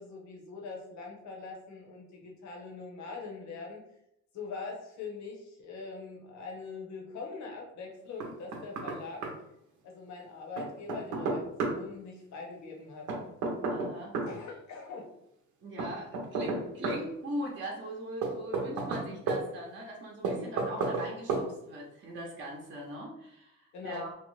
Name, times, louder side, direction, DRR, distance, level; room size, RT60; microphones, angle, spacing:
voice 1, 0.0-3.8 4.3-9.2 9.8-13.2 14.3-15.1 23.7-24.1, left 4 dB, 65° left, 0 dB, 0.8 m, -42 dB
Knock, 8.2-9.0 9.2-9.3 10.6-11.8 13.1-14.3 15.8-17.0 18.2-19.4 20.2-21.0 21.3-21.5, right 3 dB, 80° right, 0.7 m, -31 dB
voice 2, 13.7-14.2 15.6-24.1, right 1 dB, 40° right, -2 dB, 0.7 m, -40 dB
2.8 x 2.1 x 3.1 m, 0.79 s
cardioid pair, 90°, 30 cm